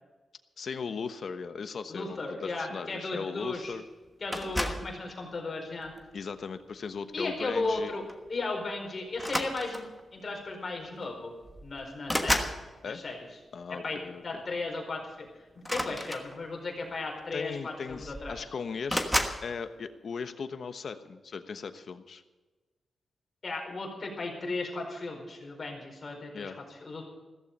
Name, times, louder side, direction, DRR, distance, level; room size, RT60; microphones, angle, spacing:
voice 1, 0.6-3.8 6.1-7.9 12.8-13.0 13.5-14.4 17.3-19.0 19.4-22.2 26.3-26.6, left 5 dB, 50° left, 9 dB, 1.1 m, -38 dB
voice 2, 1.9-3.7 4.2-5.9 7.1-9.8 10.1-11.3 11.6-12.5 12.8-13.2 13.7-14.0 14.2-15.3 15.5-18.4 23.4-27.0, left 3 dB, 35° left, 0 dB, 4.8 m, -35 dB
sound 1, 4.3-4.9 5.8-6.1 7.6-7.8 8.1-8.3 9.1-10.0 11.0-11.1 11.4-12.6 15.6-16.7 17.6-17.7 17.9-18.4 18.9-19.4, equal, ahead, 1.3 m, -31 dB
15.5 x 14.0 x 5.4 m, 1.2 s
wide cardioid pair, 165°, 0 cm